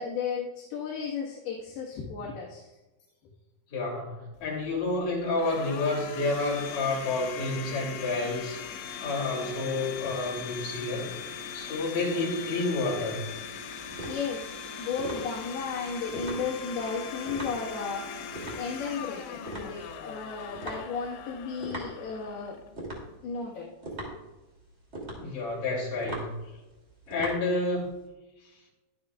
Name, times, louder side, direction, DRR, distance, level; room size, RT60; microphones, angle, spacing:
voice 1, 0.0-2.8 14.1-22.6 23.2-23.7, left 5 dB, 70° left, -4 dB, 3.4 m, -34 dB
voice 2, 3.7-8.6 9.0-11.1 11.5-13.2 25.1-26.3 27.1-27.9, left 2 dB, 50° left, -3 dB, 4.5 m, -29 dB
Domestic sounds home sounds, 4.3-23.2, left 7 dB, 90° left, 3.5 m, -40 dB
sound 1, 13.6-28.0, right 1 dB, 20° right, 2.2 m, -41 dB
22.0 x 7.9 x 2.4 m, 1.1 s
omnidirectional pair, 4.9 m